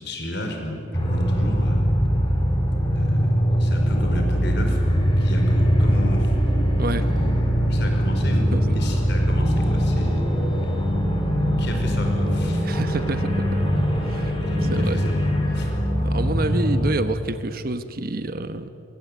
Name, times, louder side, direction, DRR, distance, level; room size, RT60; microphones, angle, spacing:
voice 1, 0.0-1.9 2.9-6.3 6.9-7.3 7.6-10.3 10.6-10.7 11.6-12.6 14.5-15.2 15.5-15.7, equal, 55° left, 3 dB, 5.2 m, -32 dB
sound 1, 0.9-16.9, equal, 25° left, 4.3 m, -21 dB
voice 2, 12.6-14.5 14.7-15.0 16.0-18.7, right 2 dB, 45° right, 10 dB, 1.2 m, -28 dB
24.5 x 23.5 x 9.3 m, 2.7 s
head